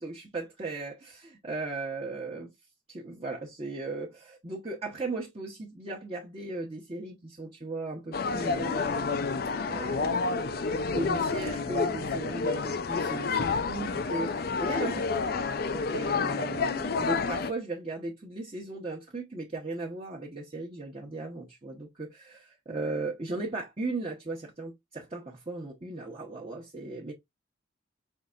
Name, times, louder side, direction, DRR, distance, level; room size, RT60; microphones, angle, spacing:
voice 1, 0.0-2.5 2.9-9.2 9.7-27.1, right 2 dB, 30° right, 1.0 m, -37 dB
sound 1, 8.1-17.5, left 4 dB, 50° left, 0.5 m, -29 dB
5.6 x 3.2 x 2.5 m
head